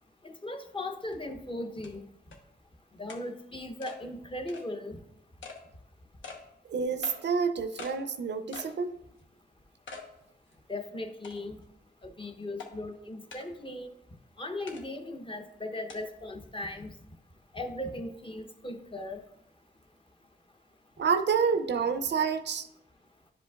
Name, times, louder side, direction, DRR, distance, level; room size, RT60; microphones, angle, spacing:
voice 1, 0.2-2.0 3.0-5.0 10.7-11.6 12.2-13.9 14.4-16.9 17.5-19.2, left 1 dB, 25° left, 5 dB, 0.7 m, -38 dB
sound 1, 1.1-1.2 1.8-1.9 2.3-2.4 3.1-3.2 3.8-4.0 4.5-4.7 5.4-5.6 6.2-6.4 7.0-7.2 7.8-8.0 8.5-8.8 9.2-9.3 9.9-10.1 10.5-10.6 11.2-11.6 12.6-12.7 13.3-13.5 14.7-14.8 15.9-16.0, left 4 dB, 85° left, 0.9 m, -44 dB
voice 2, 6.7-9.0 21.0-22.7, right 6 dB, 65° right, 9 dB, 0.5 m, -28 dB
10.5 x 5.0 x 2.3 m, 0.80 s
wide cardioid pair, 90°, 19 cm